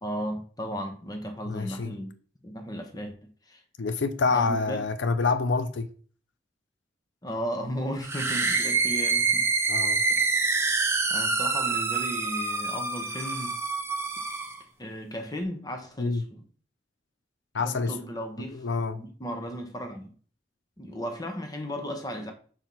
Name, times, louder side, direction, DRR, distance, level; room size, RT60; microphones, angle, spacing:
voice 1, 0.0-2.1 2.4-3.1 3.5-3.6 4.3-4.8 7.2-9.5 10.1-10.2 11.1-13.5 14.8-16.4 17.6-18.6 18.9-20.1 20.8-22.3, equal, 20° left, 1.1 m, -35 dB
voice 2, 1.5-1.9 3.8-5.9 9.7-10.0 16.0-16.2 17.5-17.9 18.5-19.0, left 4 dB, 80° left, 0.6 m, -27 dB
sound 1, 8.0-14.6, right 4 dB, 15° right, 0.8 m, -26 dB
5.9 x 4.5 x 5.5 m
head